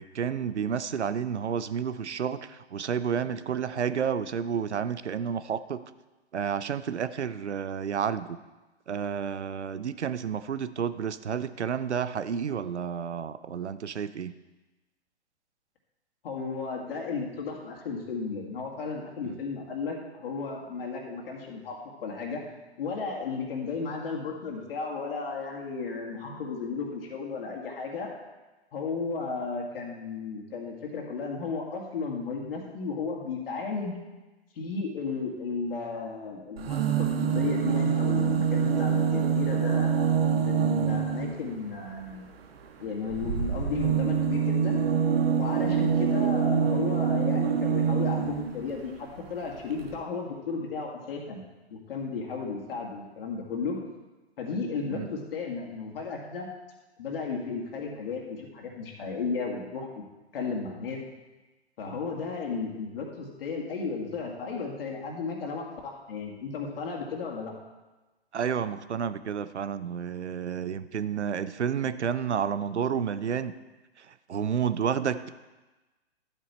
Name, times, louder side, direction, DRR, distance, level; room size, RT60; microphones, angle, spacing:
voice 1, 0.0-5.9 6.3-8.4 8.9-14.3 19.2-19.4 54.9-55.1 68.3-73.5 74.0-75.3, right 7 dB, 85° right, 14 dB, 0.7 m, -30 dB
voice 2, 16.2-22.4 22.8-28.1 28.7-34.0 34.6-39.9 40.3-42.4 42.8-44.8 45.4-51.4 51.7-53.8 54.4-56.5 57.0-60.0 60.3-61.0 61.8-67.5, left 4 dB, 55° left, -1 dB, 2.1 m, -34 dB
sound 1, 36.6-41.4 43.1-48.6 49.5-49.6 49.8-49.9, right 7 dB, 60° right, 1.2 m, -25 dB
12.0 x 8.3 x 4.3 m, 1.1 s
hypercardioid pair, 130°, 33 cm